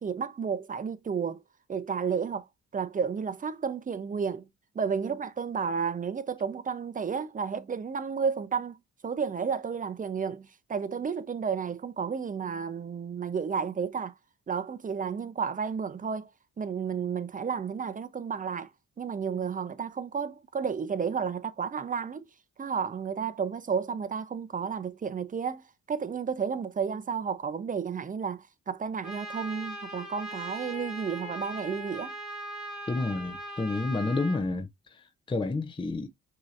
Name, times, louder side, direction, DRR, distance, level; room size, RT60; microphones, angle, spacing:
voice 1, 0.0-1.4 1.7-2.5 2.7-4.5 4.7-8.8 9.0-14.1 14.5-16.3 16.6-18.7 19.0-22.2 22.6-25.6 25.9-32.1, right 6 dB, 25° right, 0.6 m, -32 dB
Trumpet, 29.0-34.4, right 1 dB, ahead, 2.2 m, -40 dB
voice 2, 32.9-36.1, left 3 dB, 15° left, 0.6 m, -30 dB
6.0 x 2.9 x 2.5 m
cardioid pair, 90°, 30 cm